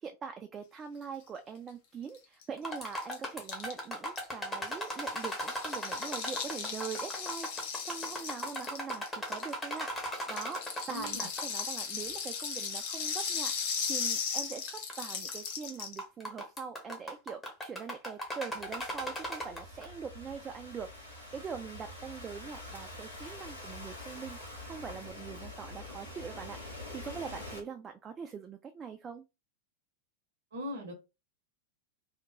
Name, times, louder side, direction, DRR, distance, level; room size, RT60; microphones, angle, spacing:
voice 1, 0.0-29.2, right 6 dB, 20° right, 0.3 m, -43 dB
Rattle (instrument), 2.1-2.2 2.4-2.5 2.7-9.8 10.2-16.0, left 6 dB, 50° left, 0.7 m, -37 dB
sound 1, 2.6-11.6 11.9-12.0 12.7-12.8 13.4-13.5 14.7-14.9 15.3-15.5 15.8-19.8, equal, 15° left, 0.8 m, -38 dB
voice 2, 10.9-11.3 30.5-30.9, left 1 dB, 65° right, 0.7 m, -39 dB
Thunderstorm / Rain, 18.6-27.6, left 1 dB, 90° left, 1.4 m, -46 dB
2.8 x 2.1 x 2.5 m
figure-of-eight pair, 90°, 0 cm